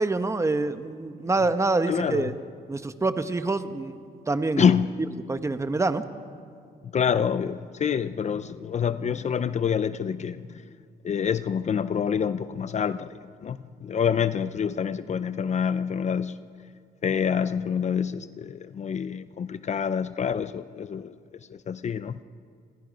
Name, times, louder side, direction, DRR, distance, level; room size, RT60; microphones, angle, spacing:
voice 1, 0.0-2.3 2.7-4.7 5.3-6.0, right 3 dB, 15° right, 1.0 m, -26 dB
voice 2, 1.9-2.3 4.6-4.9 6.9-10.6 11.0-16.4 17.0-21.1 21.5-22.2, left 7 dB, 40° left, 0.6 m, -27 dB
28.5 x 21.5 x 5.3 m
cardioid pair, 115°, 18 cm